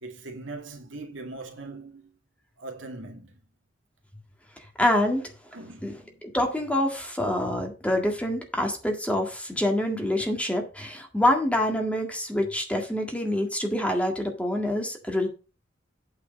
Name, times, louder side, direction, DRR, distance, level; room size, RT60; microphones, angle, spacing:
voice 1, 0.0-2.2 2.6-3.4 5.5-6.2, right 2 dB, 75° right, 2.2 m, -41 dB
voice 2, 4.8-5.3 5.8-5.9 6.2-15.3, left 1 dB, 5° left, 1.9 m, -26 dB
8.6 x 4.9 x 6.4 m
head